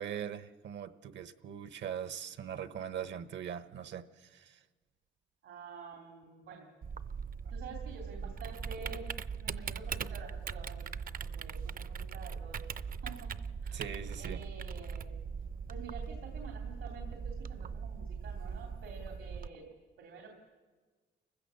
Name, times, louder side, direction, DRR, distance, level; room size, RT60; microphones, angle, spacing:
voice 1, 0.0-4.6 13.7-14.4, right 9 dB, 65° right, 13 dB, 1.1 m, -41 dB
voice 2, 5.4-6.7 7.5-10.9 11.2-13.3 13.6-13.8 14.2-15.2 15.7-19.7 20.0-20.3, right 4 dB, 85° right, 1 dB, 3.0 m, -49 dB
Typing, 6.8-19.5, right 6 dB, 45° right, 0.6 m, -40 dB
28.5 x 15.5 x 7.0 m, 1.4 s
cardioid pair, 90°, 20 cm